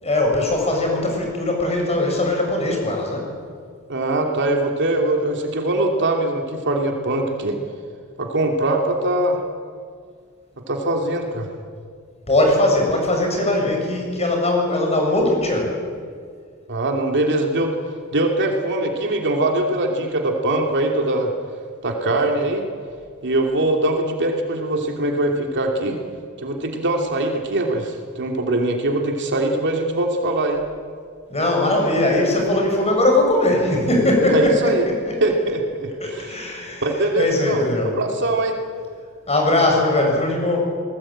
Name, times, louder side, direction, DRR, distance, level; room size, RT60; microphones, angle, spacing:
voice 1, 0.0-3.2 12.3-15.7 31.3-34.6 36.0-36.8 37.2-38.0 39.3-40.6, left 1 dB, 30° left, 1 dB, 7.1 m, -20 dB
voice 2, 3.9-7.6 8.2-9.4 10.7-11.5 16.7-17.7 18.1-21.3 21.8-22.7 23.2-26.0 26.4-30.6 34.3-34.8 35.2-38.6, right 1 dB, 55° right, 2 dB, 2.8 m, -22 dB
27.5 x 19.5 x 8.9 m, 2.1 s
head